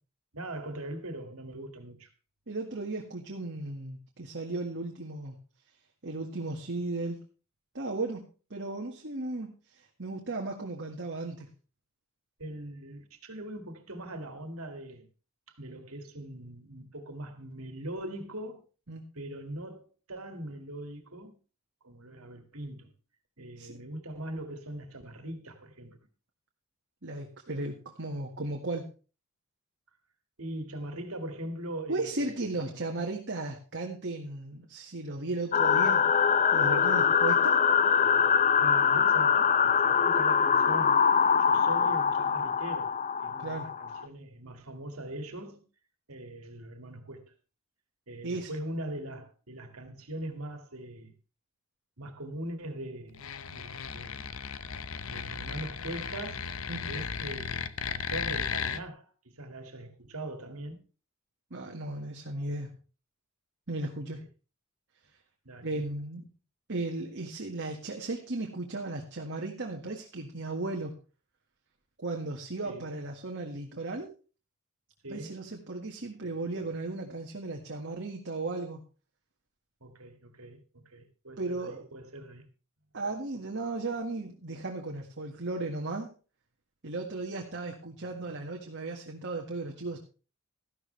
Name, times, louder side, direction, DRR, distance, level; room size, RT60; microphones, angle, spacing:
voice 1, 0.3-2.1 12.4-15.1 15.6-18.7 19.1-21.4 21.8-22.9 23.4-26.0 30.4-32.8 38.6-41.0 41.4-42.9 43.2-45.6 46.1-47.3 48.1-51.1 52.0-53.2 53.5-54.3 55.1-56.6 56.9-60.8 65.5-65.9 72.6-72.9 75.0-75.4 79.8-82.5, right 1 dB, 85° right, 2.3 m, -41 dB
voice 2, 2.5-5.4 6.0-7.2 7.7-8.2 8.5-11.5 18.9-19.0 23.6-23.8 27.0-28.9 31.9-36.0 36.5-37.6 43.4-43.7 48.2-48.5 56.7-56.8 61.5-62.7 63.7-64.2 65.6-66.3 66.7-70.9 72.0-74.1 75.1-78.8 81.4-81.9 82.9-86.1 86.8-90.0, right 2 dB, 55° right, 1.9 m, -35 dB
sound 1, 35.5-44.1, left 7 dB, 35° left, 0.6 m, -24 dB
sound 2, 53.1-58.8, left 6 dB, 75° left, 0.9 m, -35 dB
14.5 x 12.5 x 3.3 m
head